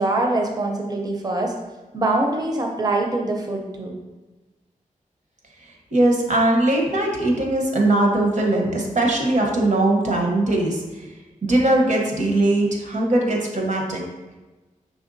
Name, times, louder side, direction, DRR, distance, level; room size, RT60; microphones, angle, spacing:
voice 1, 0.0-1.5 1.9-4.0, right 2 dB, 30° right, 1 dB, 0.6 m, -23 dB
voice 2, 5.9-10.8 11.4-14.0, right 1 dB, 60° right, 0 dB, 0.9 m, -20 dB
5.1 x 3.3 x 2.6 m, 1.1 s
wide cardioid pair, 90°, 14 cm